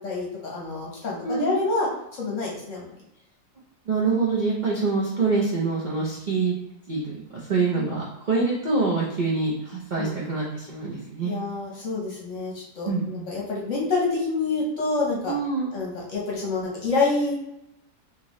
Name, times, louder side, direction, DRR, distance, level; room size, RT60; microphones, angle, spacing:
voice 1, 0.0-1.9 2.2-2.9 7.8-7.9 10.0-10.2 11.2-15.3 15.7-17.3, left 3 dB, 55° left, -3 dB, 1.0 m, -27 dB
voice 2, 1.2-1.6 3.9-6.6 6.9-7.2 7.5-11.3 12.8-13.3 15.3-15.7, right 4 dB, 60° right, -6 dB, 0.5 m, -25 dB
3.6 x 3.0 x 3.0 m, 0.86 s
omnidirectional pair, 1.9 m